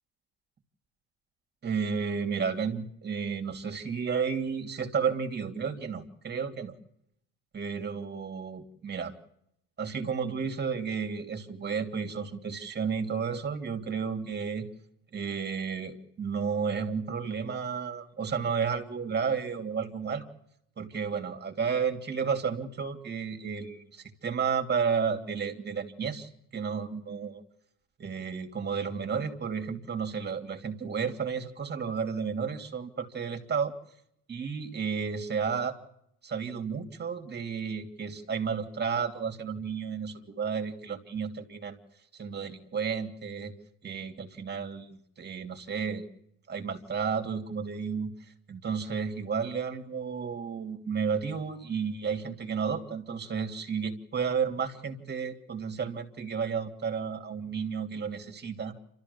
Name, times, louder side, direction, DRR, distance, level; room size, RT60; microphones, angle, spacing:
voice 1, 1.6-6.7 7.5-9.1 9.8-14.7 15.1-20.2 20.8-27.4 28.0-33.7 34.3-35.8 36.2-41.8 42.1-43.5 43.8-46.1 46.5-48.1 48.5-58.7, right 6 dB, 30° right, 5 dB, 3.0 m, -32 dB
28.0 x 13.5 x 7.0 m, 0.78 s
hypercardioid pair, 85°, 35 cm